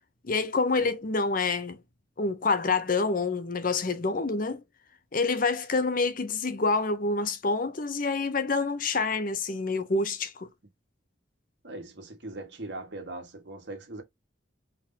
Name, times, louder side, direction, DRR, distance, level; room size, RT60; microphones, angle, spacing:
voice 1, 0.2-1.8 2.2-4.6 5.1-10.5, left 3 dB, 45° left, 0.7 m, -27 dB
voice 2, 11.6-14.0, right 2 dB, 60° right, 1.6 m, -40 dB
4.5 x 3.9 x 2.8 m
head